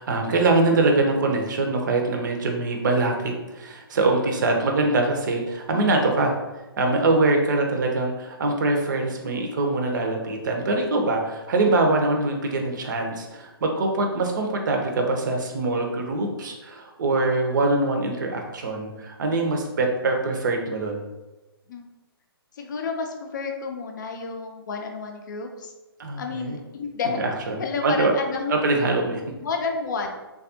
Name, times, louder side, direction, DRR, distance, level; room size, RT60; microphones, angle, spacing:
voice 1, 0.0-6.3 6.8-21.0 26.0-26.6 27.2-27.6 27.8-28.1 28.5-29.2, right 2 dB, 50° right, 3 dB, 0.6 m, -23 dB
voice 2, 22.5-25.7 26.2-27.2 27.6-28.6 29.4-30.1, left 5 dB, 50° left, 3 dB, 0.5 m, -30 dB
3.3 x 2.3 x 2.7 m, 1.1 s
figure-of-eight pair, 130°, 13 cm